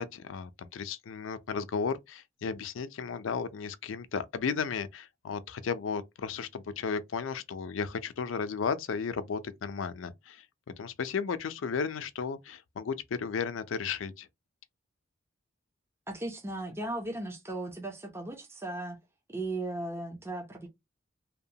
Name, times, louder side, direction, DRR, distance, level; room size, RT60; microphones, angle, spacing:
voice 1, 0.0-10.4 10.8-14.3, left 5 dB, 75° left, 0.4 m, -34 dB
voice 2, 16.1-19.0 19.3-20.7, right 2 dB, 15° right, 0.5 m, -36 dB
2.8 x 2.1 x 2.7 m
head